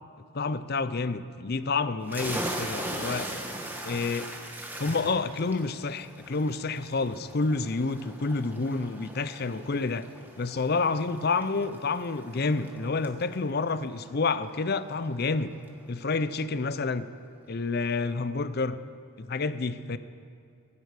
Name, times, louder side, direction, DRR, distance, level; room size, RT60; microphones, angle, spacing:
voice 1, 0.3-3.3 3.8-4.3 4.8-10.1 10.4-15.5 15.9-17.1 17.5-18.8 19.2-20.0, left 3 dB, 45° left, 13 dB, 0.6 m, -29 dB
sound 1, 2.1-15.4, right 1 dB, 10° right, 1.2 m, -40 dB
17.0 x 16.0 x 4.9 m, 2.5 s
head